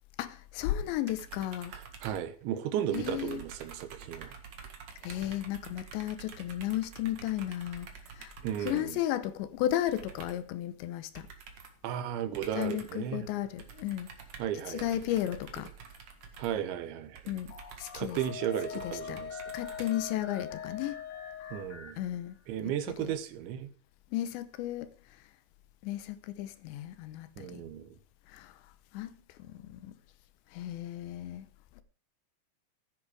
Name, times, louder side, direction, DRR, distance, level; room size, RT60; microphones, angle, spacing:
voice 1, 0.2-1.7 2.9-3.4 5.0-7.9 8.1-8.3 8.6-11.3 12.6-14.1 14.7-15.7 17.3-18.2 18.8-19.2 19.5-21.0 22.0-22.4 22.9-23.1 24.1-25.0 25.8-27.6 28.3-28.5 28.9-30.0 30.5-31.5, left 13 dB, 80° left, 3.1 m, -34 dB
sound 1, 1.1-2.7 2.9-9.0 9.9-10.5 11.2-11.8 12.3-13.1 13.6-20.4, right 6 dB, 50° right, 2.2 m, -49 dB
voice 2, 1.7-4.3 8.4-9.0 11.8-13.3 14.4-15.0 16.4-17.2 18.0-19.4 21.5-22.0 22.5-23.7 27.4-27.9, right 10 dB, 80° right, 3.5 m, -35 dB
sound 2, 17.5-22.6, left 4 dB, 55° left, 3.1 m, -51 dB
Wind instrument woodwind instrument, 18.2-21.8, left 8 dB, 30° left, 2.5 m, -42 dB
14.5 x 10.5 x 4.9 m
omnidirectional pair, 5.2 m